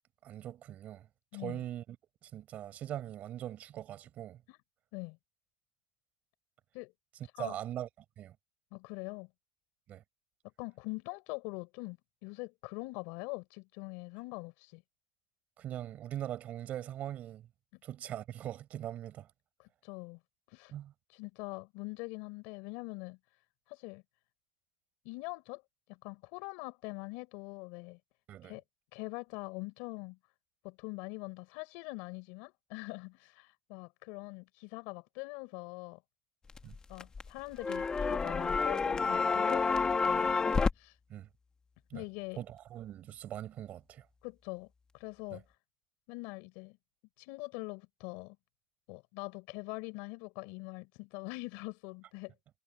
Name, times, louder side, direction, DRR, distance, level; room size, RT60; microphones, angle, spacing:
voice 1, 0.2-1.1 1.3-2.0 2.2-4.4 7.4-7.9 8.2-8.3 9.9-10.0 15.6-17.5 17.8-19.3 20.7-20.9 28.3-28.6 36.6-36.7 41.1-41.3 41.9-42.0 42.4-44.0 45.3-45.4, right 12 dB, 60° right, 6.2 m, -41 dB
voice 2, 8.7-9.3 10.6-14.8 19.6-20.2 20.5-20.7 21.1-23.2 23.7-24.0 25.1-25.6 25.9-28.0 28.4-28.6 28.9-30.2 30.6-36.0 36.9-40.5 40.8-41.0 41.9-42.4 44.2-44.7 44.9-45.4 46.1-46.8 47.2-48.4 48.9-52.3, left 26 dB, 90° left, 5.1 m, -43 dB
sound 1, 36.5-37.3 37.6-40.7, left 4 dB, 30° left, 1.7 m, -29 dB
supercardioid pair, 90°, 3 cm